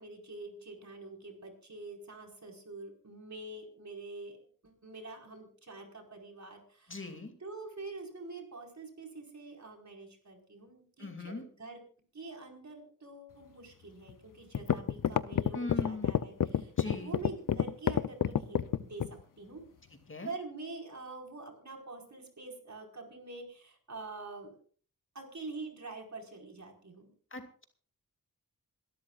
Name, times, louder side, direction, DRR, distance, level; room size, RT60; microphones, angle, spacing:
voice 1, 0.0-7.1 7.4-11.8 12.1-19.0 19.4-19.6 20.2-24.6 25.1-27.1, right 3 dB, 55° right, 2 dB, 4.9 m, -46 dB
voice 2, 6.9-7.3 11.0-11.4 15.5-16.1 16.8-17.1 20.1-20.3 27.3-27.6, left 3 dB, 35° left, 5 dB, 2.6 m, -39 dB
sound 1, 14.1-14.2 14.5-19.2, left 9 dB, 65° left, 0.7 m, -28 dB
27.0 x 13.0 x 2.5 m, 0.43 s
cardioid pair, 60°, 34 cm